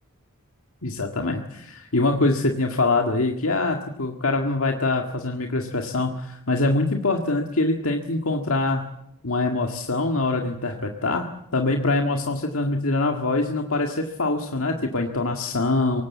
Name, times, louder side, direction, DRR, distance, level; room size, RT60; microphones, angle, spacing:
voice 1, 0.8-8.9 9.2-11.3 11.5-16.0, left 2 dB, 70° left, 3 dB, 1.9 m, -24 dB
24.0 x 19.5 x 8.4 m, 0.78 s
head